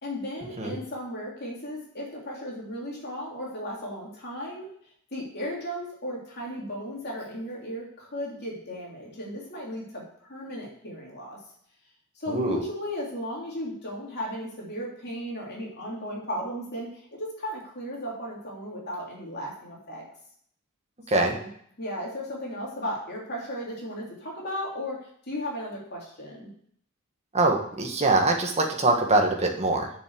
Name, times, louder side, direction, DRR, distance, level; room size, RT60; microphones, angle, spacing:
voice 1, 0.0-4.7 5.1-10.0 10.3-11.4 12.1-20.0 21.1-21.5 21.8-25.0 25.3-26.5, equal, 45° left, -3 dB, 3.2 m, -35 dB
voice 2, 12.3-12.6 21.1-21.3 27.3-29.9, right 2 dB, 30° right, 2 dB, 1.6 m, -23 dB
7.3 x 7.0 x 7.9 m, 0.64 s
head